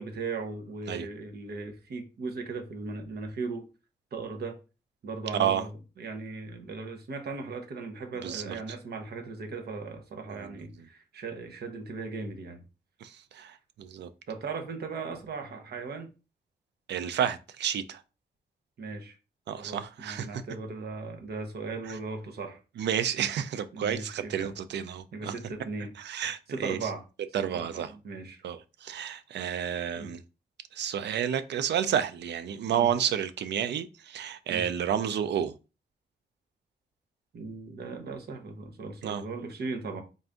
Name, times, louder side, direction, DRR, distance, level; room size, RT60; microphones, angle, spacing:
voice 1, 0.0-3.7 4.1-4.6 5.0-12.6 14.3-16.1 18.8-19.2 19.6-22.6 23.7-24.5 25.1-25.9 26.5-27.0 27.4-28.4 30.0-30.1 32.7-32.9 34.5-34.6 37.3-40.0, right 4 dB, 65° right, 0.9 m, -38 dB
voice 2, 8.2-8.5 10.3-10.5 13.0-14.1 16.9-18.0 19.5-20.3 22.8-25.3 26.0-26.8 27.3-27.9 28.4-30.2 30.7-35.5 39.0-39.2, right 9 dB, 90° right, 0.4 m, -30 dB
3.9 x 2.5 x 3.5 m
wide cardioid pair, 140°, 17 cm